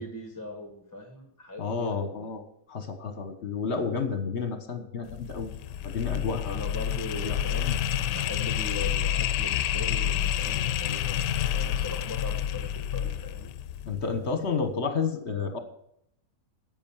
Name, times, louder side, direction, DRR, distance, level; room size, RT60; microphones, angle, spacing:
voice 1, 0.0-2.1 6.4-7.8 8.1-13.5, left 2 dB, 10° left, 3 dB, 1.5 m, -40 dB
voice 2, 1.6-2.4 2.7-5.5 5.8-6.6 7.2-7.4 13.9-15.6, left 5 dB, 40° left, 8 dB, 1.6 m, -30 dB
sound 1, 5.0-14.2, left 10 dB, 80° left, 1.2 m, -29 dB
10.5 x 7.9 x 7.3 m, 0.73 s
omnidirectional pair, 1.8 m